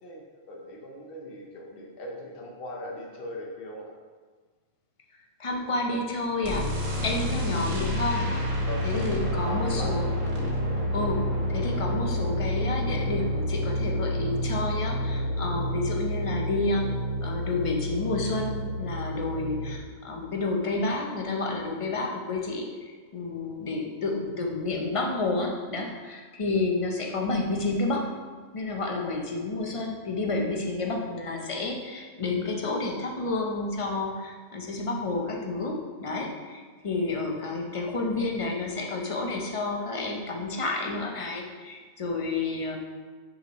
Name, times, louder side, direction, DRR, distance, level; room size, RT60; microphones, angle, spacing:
voice 1, 0.0-4.0 8.6-10.0, left 1 dB, 50° left, 0 dB, 1.0 m, -40 dB
voice 2, 5.4-6.7 7.0-8.3 8.8-10.1 10.9-28.1 28.5-42.8, left 2 dB, 35° left, 1 dB, 0.6 m, -30 dB
sound 1, 6.4-19.8, equal, 90° right, 1.7 m, -29 dB
6.0 x 5.2 x 3.0 m, 1.5 s
omnidirectional pair, 1.3 m